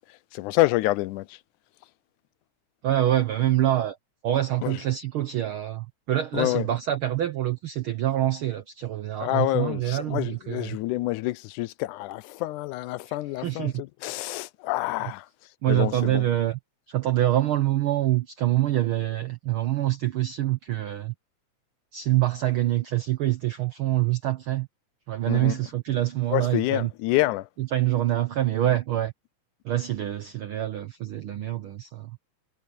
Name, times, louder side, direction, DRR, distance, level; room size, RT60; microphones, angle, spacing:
voice 1, 0.1-1.4 4.6-4.8 6.3-6.7 9.2-15.3 15.7-16.3 25.3-25.6 26.3-27.5, left 18 dB, 85° left, 2.1 m, -27 dB
voice 2, 2.8-4.0 4.2-10.8 13.4-13.8 15.0-15.1 15.6-16.6 16.9-21.1 21.9-24.7 25.1-26.9 27.6-29.1 29.6-32.2, right 13 dB, 75° right, 1.2 m, -25 dB
omnidirectional pair, 3.5 m